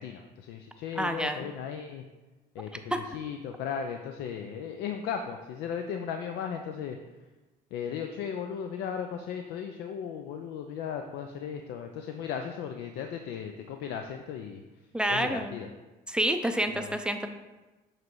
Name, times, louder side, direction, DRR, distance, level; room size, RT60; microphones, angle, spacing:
voice 1, 0.0-2.0 2.5-7.0 7.7-14.6 15.1-15.7 16.7-17.0, left 7 dB, 85° left, 5 dB, 0.5 m, -36 dB
voice 2, 1.0-1.5 2.9-3.0 14.9-15.6 16.1-17.3, right 1 dB, 5° right, 6 dB, 0.4 m, -28 dB
7.4 x 3.1 x 4.7 m, 1.1 s
cardioid pair, 110°, 17 cm